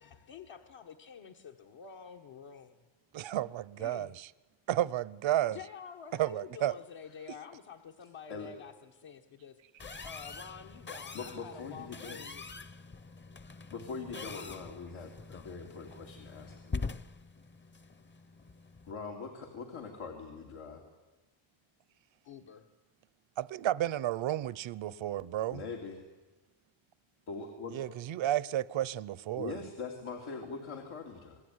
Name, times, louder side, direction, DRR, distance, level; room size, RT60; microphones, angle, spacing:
voice 1, 0.0-2.8 3.8-4.2 5.5-9.6 10.0-12.7 22.2-22.7, left 7 dB, 70° left, 1.7 m, -49 dB
voice 2, 3.1-4.3 4.7-5.6 6.2-6.7 23.4-25.6 27.7-29.6, right 13 dB, 70° right, 0.8 m, -32 dB
sound 1, 9.8-18.9, left 4 dB, 25° left, 0.8 m, -44 dB
voice 3, 11.1-12.2 13.7-16.9 18.9-20.8 25.5-26.0 27.3-27.8 29.4-31.4, left 4 dB, 90° left, 3.3 m, -42 dB
28.0 x 21.0 x 9.7 m
cardioid pair, 105°, 47 cm